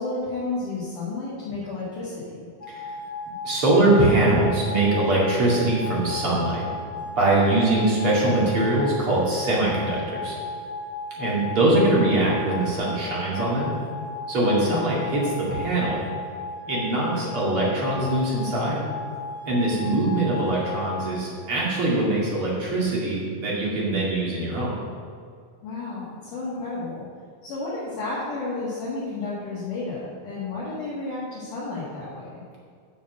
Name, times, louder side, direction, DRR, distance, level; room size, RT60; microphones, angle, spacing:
voice 1, 0.0-2.4 14.4-14.8 25.6-27.0 27.4-32.4, left 3 dB, 60° left, -9 dB, 3.0 m, -32 dB
sound 1, 2.6-21.1, left 3 dB, 20° left, 1.3 m, -35 dB
voice 2, 3.4-6.7 7.2-10.3 11.2-13.7 14.3-15.2 15.5-16.0 16.6-18.8 19.5-24.7, right 2 dB, 40° right, -6 dB, 2.7 m, -22 dB
7.4 x 7.0 x 7.4 m, 2.2 s
omnidirectional pair, 4.5 m